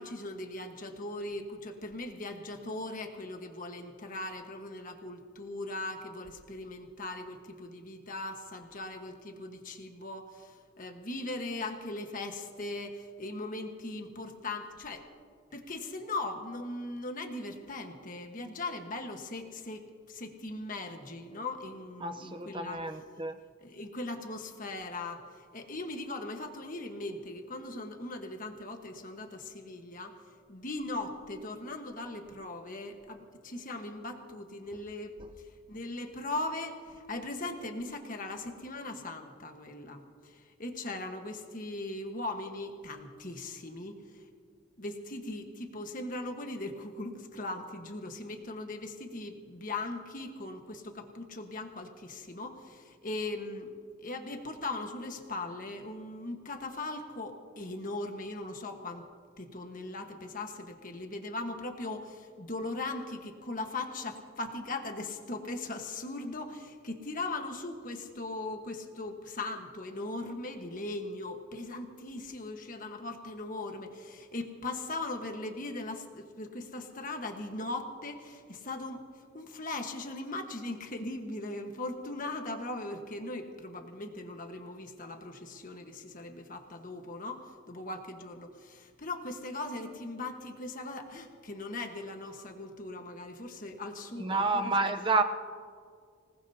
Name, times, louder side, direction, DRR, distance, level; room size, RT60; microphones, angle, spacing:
voice 1, 0.0-15.1 15.5-22.8 23.6-30.2 30.5-35.2 35.7-44.2 44.8-53.7 54.0-59.1 59.4-79.1 79.3-95.1, left 2 dB, 40° left, 5 dB, 1.4 m, -39 dB
voice 2, 22.0-23.4 94.2-95.2, right 3 dB, 25° right, 7 dB, 0.7 m, -29 dB
25.5 x 19.0 x 2.8 m, 2.1 s
head